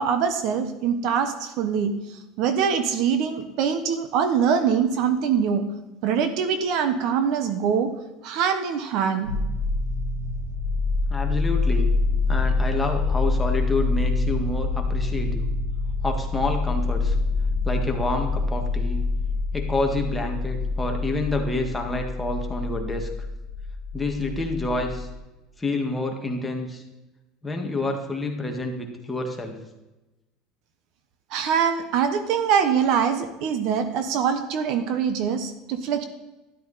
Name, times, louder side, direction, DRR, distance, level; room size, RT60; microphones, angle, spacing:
voice 1, 0.0-1.9 2.4-5.6 6.0-7.9 8.2-9.3 31.3-36.0, right 7 dB, 60° right, 9 dB, 1.2 m, -23 dB
sound 1, 9.2-25.1, left 3 dB, 75° right, 4.0 m, -26 dB
voice 2, 11.1-11.9 12.3-15.5 16.0-17.1 17.6-19.0 19.5-23.1 23.9-25.1 25.6-26.8 27.4-29.6, left 2 dB, 10° left, 1 dB, 1.8 m, -28 dB
12.5 x 11.0 x 4.2 m, 1.0 s
supercardioid pair, 135°, 0 cm